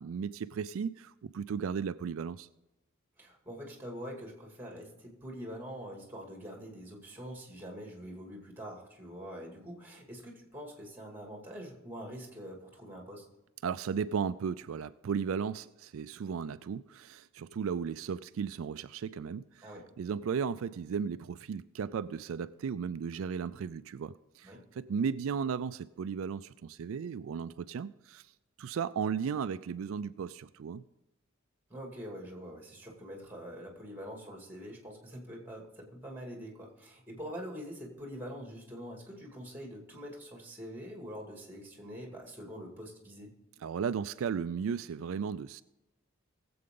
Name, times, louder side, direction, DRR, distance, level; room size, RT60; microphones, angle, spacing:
voice 1, 0.0-2.5 13.6-19.7 20.0-28.3 28.6-30.8 43.6-45.6, right 6 dB, 75° right, 13 dB, 0.4 m, -35 dB
voice 2, 3.2-13.3 19.6-19.9 24.4-24.6 31.7-43.3, equal, 10° right, 0 dB, 2.5 m, -44 dB
19.5 x 7.8 x 3.8 m, 0.98 s
head